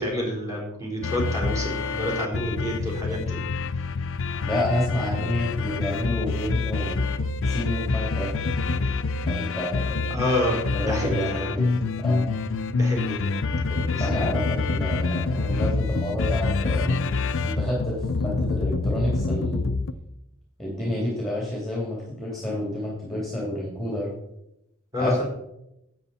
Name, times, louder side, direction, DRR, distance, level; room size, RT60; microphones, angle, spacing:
voice 1, 0.0-3.4 10.1-11.4 12.7-13.2 13.7-14.1 20.8-21.1 24.9-25.1, left 1 dB, 15° right, -3 dB, 4.1 m, -28 dB
sound 1, 1.0-19.9, left 3 dB, 65° left, 0.6 m, -26 dB
voice 2, 4.4-7.0 7.4-8.3 9.2-10.2 10.7-12.3 14.0-16.9 17.4-19.7 20.6-24.1 25.0-25.3, left 1 dB, ahead, -4 dB, 2.7 m, -29 dB
12.5 x 8.3 x 4.2 m, 0.85 s
head